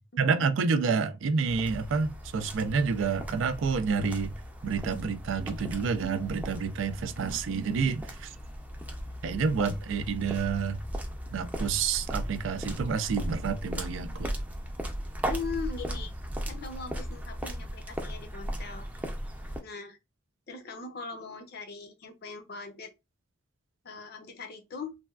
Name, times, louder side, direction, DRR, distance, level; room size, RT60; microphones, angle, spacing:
voice 1, 0.2-4.3 4.6-8.3 9.2-10.8 11.3-14.3, right 5 dB, 85° right, 0.4 m, -29 dB
sound 1, 1.5-19.6, equal, 10° right, 0.4 m, -37 dB
voice 2, 15.3-16.1 16.4-18.9 19.6-20.0 20.5-22.9 23.8-24.9, left 4 dB, 55° left, 0.6 m, -40 dB
3.3 x 2.2 x 2.3 m
head